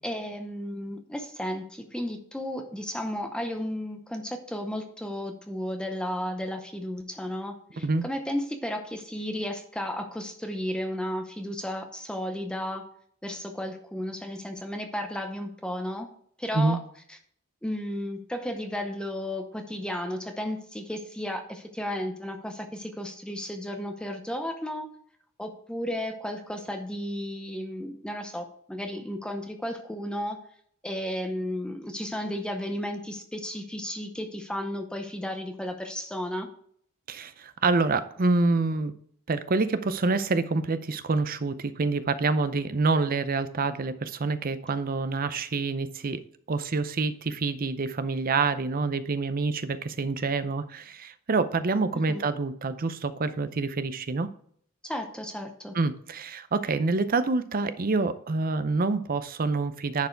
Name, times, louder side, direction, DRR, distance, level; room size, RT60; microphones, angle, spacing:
voice 1, 0.0-12.9 13.2-16.1 16.4-16.8 17.1-17.2 17.6-24.9 25.4-30.4 30.8-36.5 52.1-52.2 54.8-55.8, left 1 dB, 5° left, 5 dB, 0.7 m, -33 dB
voice 2, 37.1-38.9 39.3-46.2 46.5-54.3 55.7-60.1, right 3 dB, 40° right, 13 dB, 0.6 m, -27 dB
10.5 x 4.6 x 4.5 m, 0.62 s
head